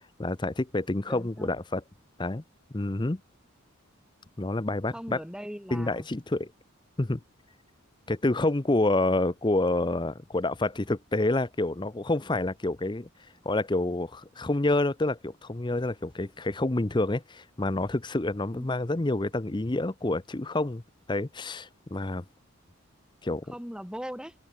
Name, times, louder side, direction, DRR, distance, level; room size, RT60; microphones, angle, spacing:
voice 1, 0.2-1.8 2.2-2.4 2.7-3.2 4.4-5.2 5.7-6.5 7.0-7.2 8.1-13.1 13.4-20.8 21.1-22.2 23.2-23.4, left 2 dB, 20° left, 0.6 m, -28 dB
voice 2, 1.1-1.5 4.9-6.1 18.5-18.7 23.5-24.4, equal, 5° right, 4.9 m, -39 dB
head